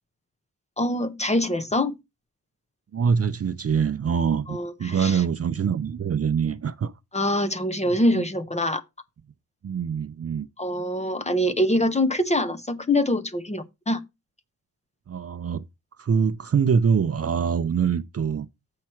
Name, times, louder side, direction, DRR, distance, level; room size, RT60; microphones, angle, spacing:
voice 1, 0.8-2.0 4.5-5.2 7.1-8.8 10.6-14.0, left 1 dB, 15° left, 0.7 m, -24 dB
voice 2, 2.9-6.9 7.8-8.2 9.6-10.5 15.1-15.6 16.0-18.5, right 6 dB, 40° right, 0.5 m, -24 dB
7.5 x 5.7 x 4.5 m
wide cardioid pair, 115°, 39 cm